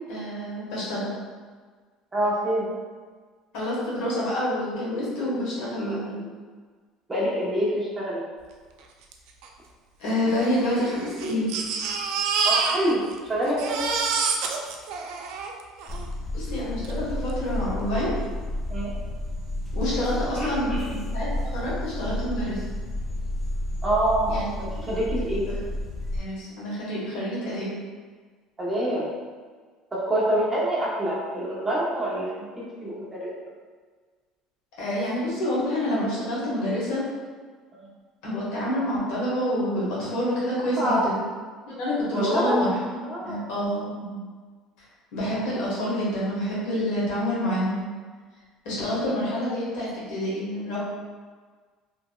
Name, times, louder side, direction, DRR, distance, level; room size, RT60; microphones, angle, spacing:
voice 1, 0.1-1.1 3.5-6.3 10.0-11.6 16.3-18.1 19.7-21.3 21.5-22.6 24.3-24.5 25.0-25.6 26.1-27.7 34.8-37.0 38.2-41.2 41.7-43.0 43.2-44.2 45.1-47.9 48.6-50.8, left 1 dB, 80° left, -7 dB, 1.2 m, -28 dB
voice 2, 2.1-2.7 5.8-6.0 7.1-8.2 12.4-13.0 13.3-13.8 18.7-18.9 20.3-20.9 23.8-25.5 28.6-29.1 29.9-33.3 37.8-37.9 40.8-41.1 42.1-42.6 43.0-43.4, right 1 dB, 15° right, -6 dB, 0.8 m, -26 dB
Crying sobbing, 9.1-9.2 9.4-9.5 10.3-13.2 13.4-16.0 16.8-16.9 17.3-17.4, right 5 dB, 70° right, 0.3 m, -27 dB
sound 1, 15.9-26.2, left 1 dB, 15° left, 0.5 m, -31 dB
2.8 x 2.7 x 2.2 m, 1.5 s
supercardioid pair, 110°, 0 cm